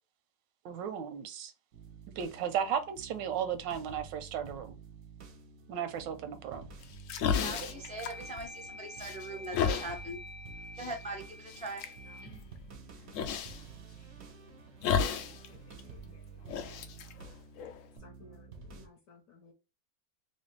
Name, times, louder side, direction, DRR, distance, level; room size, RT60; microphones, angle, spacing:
voice 1, 0.6-1.5 2.2-4.8 5.7-6.7, right 8 dB, 85° right, 1.3 m, -35 dB
sound 1, 1.7-18.9, right 5 dB, 65° right, 0.6 m, -51 dB
sound 2, 6.5-7.0 7.5-13.6, left 2 dB, 35° left, 1.0 m, -49 dB
sound 3, 6.8-8.7 9.0-9.9 10.8-11.0 11.5-11.9 13.1-13.6 14.8-15.5 15.7-15.8 16.5-18.0, left 7 dB, 85° left, 0.7 m, -32 dB
voice 2, 7.2-10.2 10.8-11.9, right 2 dB, 10° left, 0.4 m, -41 dB
voice 3, 12.1-12.5 15.1-16.4 18.0-19.5, left 4 dB, 60° left, 1.0 m, -58 dB
3.3 x 2.8 x 3.1 m
omnidirectional pair, 1.9 m